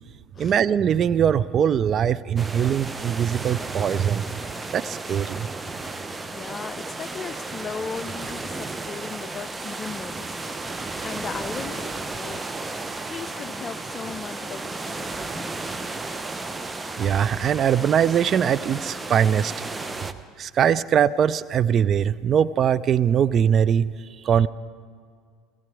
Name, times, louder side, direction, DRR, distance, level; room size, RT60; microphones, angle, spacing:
voice 1, 0.4-4.2 4.7-5.5 17.0-19.5 20.4-23.9 24.2-24.5, right 8 dB, 40° right, 17 dB, 0.4 m, -21 dB
sound 1, 2.4-20.1, right 3 dB, 15° right, 0.8 m, -34 dB
voice 2, 6.3-10.5 11.0-15.9, left 6 dB, 35° left, 15 dB, 0.5 m, -37 dB
18.0 x 16.5 x 4.8 m, 2.1 s
hypercardioid pair, 70°, 0 cm